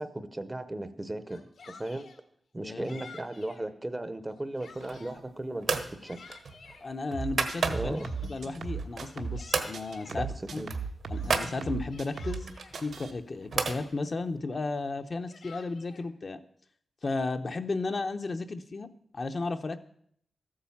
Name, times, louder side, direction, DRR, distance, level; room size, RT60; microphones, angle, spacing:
voice 1, 0.0-2.1 2.5-6.2 7.7-8.1 10.1-10.3 10.6-10.7, right 1 dB, 15° right, 12 dB, 0.7 m, -36 dB
Yell, 1.2-2.2 2.8-3.6 4.2-5.2 5.7-6.9 7.6-8.6 9.1-10.2 10.7-12.8 13.4-13.5 13.8-14.2 15.0-16.1, left 5 dB, 85° left, 1.8 m, -52 dB
sound 1, 4.7-5.2 5.6-5.9 6.3-8.1 8.6-9.2 9.5-9.7 10.1-10.2 10.5-11.5 12.3-13.8, right 4 dB, 65° right, 1.3 m, -32 dB
voice 2, 6.8-8.0 8.3-10.6 11.1-12.5 12.8-16.4 17.0-18.9 19.1-19.8, left 3 dB, 35° left, 7 dB, 0.7 m, -34 dB
sound 2, 7.1-9.5 9.7-12.5 12.7-13.1, right 5 dB, 80° right, 1.3 m, -37 dB
14.0 x 8.7 x 7.1 m, 0.66 s
wide cardioid pair, 165°, 0 cm